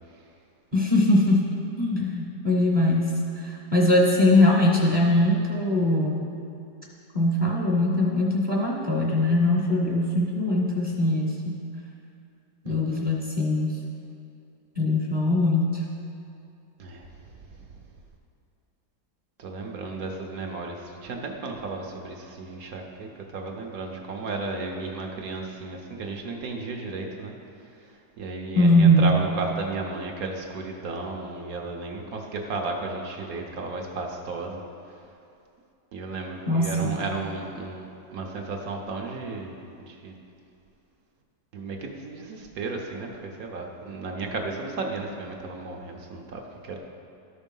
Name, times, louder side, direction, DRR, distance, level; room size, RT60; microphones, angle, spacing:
voice 1, 0.7-1.4 1.8-6.3 7.1-11.6 12.6-13.8 14.7-15.8 28.5-29.1 36.5-37.0, left 1 dB, 35° right, -3 dB, 0.9 m, -21 dB
voice 2, 12.7-13.1 16.8-17.8 19.4-35.1 35.9-37.9 38.1-40.2 41.5-46.8, right 3 dB, 65° right, 1 dB, 1.1 m, -34 dB
12.5 x 4.4 x 5.3 m, 2.6 s
omnidirectional pair, 1.8 m